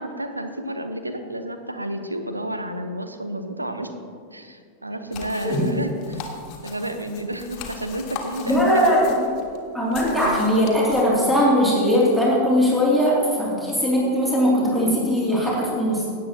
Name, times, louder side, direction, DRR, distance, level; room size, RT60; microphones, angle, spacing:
voice 1, 0.0-3.9 4.3-6.2 6.6-9.0 10.2-10.4, right 1 dB, 85° right, 7 dB, 0.8 m, -31 dB
sound 1, 5.1-11.0, left 5 dB, 40° left, 1.6 m, -39 dB
voice 2, 8.5-9.2 9.7-16.1, equal, ahead, -6 dB, 2.6 m, -20 dB
16.5 x 8.8 x 2.9 m, 2.3 s
figure-of-eight pair, 90°, 0 cm